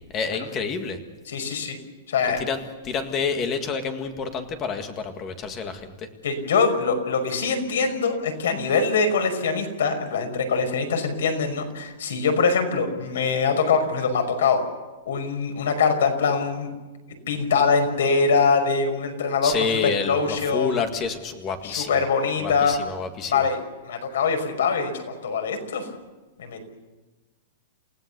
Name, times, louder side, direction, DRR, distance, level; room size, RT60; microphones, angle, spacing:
voice 1, 0.1-1.0 2.4-6.1 19.4-22.0 22.4-23.5, left 5 dB, 20° left, 7 dB, 1.8 m, -28 dB
voice 2, 1.3-1.8 2.1-2.4 6.2-14.6 15.1-16.7 17.3-20.8 21.6-22.8 23.3-23.6 23.8-25.9 26.4-26.6, left 5 dB, 90° left, 6 dB, 5.5 m, -23 dB
29.0 x 17.0 x 6.9 m, 1.2 s
supercardioid pair, 180°, 0 cm